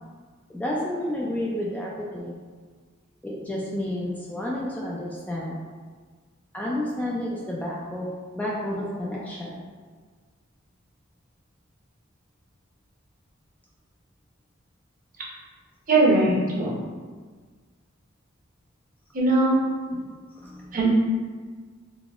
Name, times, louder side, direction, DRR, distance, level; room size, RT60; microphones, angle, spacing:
voice 1, 0.5-2.4 3.2-5.6 6.5-9.6 19.9-20.0 20.4-20.8, left 1 dB, 5° left, -5 dB, 0.3 m, -31 dB
voice 2, 15.9-16.8 19.1-19.6 20.7-20.9, right 2 dB, 40° right, -4 dB, 0.7 m, -20 dB
3.9 x 2.8 x 2.4 m, 1.5 s
head